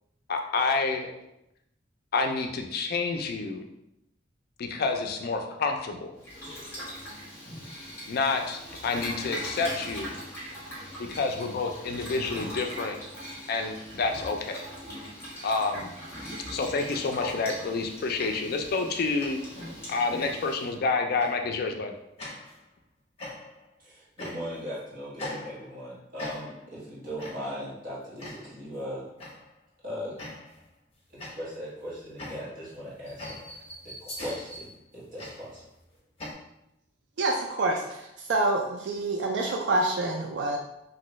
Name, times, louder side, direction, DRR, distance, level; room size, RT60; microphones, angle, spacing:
voice 1, 0.3-1.1 2.1-3.6 4.6-6.1 8.1-10.1 11.0-13.0 13.5-14.6 15.4-15.9 16.5-19.4 19.9-21.9, left 4 dB, 55° left, 4 dB, 0.4 m, -28 dB
Boiling, 6.2-20.7, equal, 15° left, 1.1 m, -41 dB
sound 1, 17.2-17.9 18.2-18.6 19.2-19.6 20.2-20.6 21.2-21.5 22.2-22.6 23.2-23.7 24.2-24.7 25.2-25.9 26.2-26.7 27.2-27.6 28.2-28.6 29.2-29.5 30.2-30.7 31.2-36.3, left 1 dB, 35° left, 0.8 m, -41 dB
voice 2, 23.8-29.1 29.8-30.2 31.4-33.6 34.0-35.6, equal, 45° right, -7 dB, 1.3 m, -38 dB
voice 3, 37.2-40.6, right 2 dB, 65° right, 1 dB, 0.4 m, -27 dB
3.1 x 2.6 x 3.0 m, 0.84 s
head